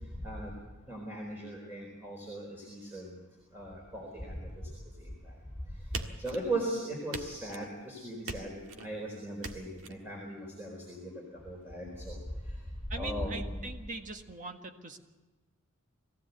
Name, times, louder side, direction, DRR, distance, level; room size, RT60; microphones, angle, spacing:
voice 1, 0.9-3.2 3.5-4.5 6.2-11.1 11.4-12.2 13.0-13.6, right 1 dB, 10° right, -1 dB, 4.2 m, -38 dB
sound 1, 5.9-6.7 7.1-7.7 8.3-8.9 9.4-9.9, right 3 dB, 70° right, 1.7 m, -41 dB
voice 2, 12.9-15.0, right 3 dB, 40° right, 5 dB, 1.7 m, -42 dB
22.0 x 16.0 x 8.2 m, 1.2 s
head